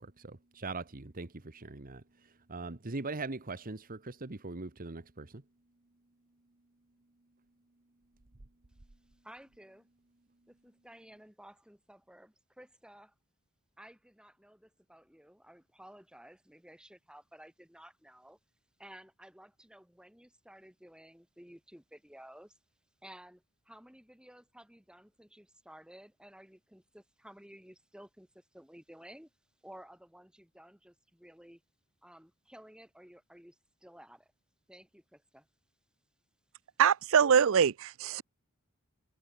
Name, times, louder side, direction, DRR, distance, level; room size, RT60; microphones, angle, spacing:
voice 1, 0.0-5.4, right 3 dB, 40° right, 1.2 m, -41 dB
voice 2, 9.2-9.9 10.5-13.1 13.8-18.4 18.8-22.6 23.0-29.3 29.6-31.6 32.0-34.3 34.7-35.5, equal, 5° right, 5.9 m, -54 dB
voice 3, 36.8-38.2, right 7 dB, 65° right, 0.5 m, -24 dB
head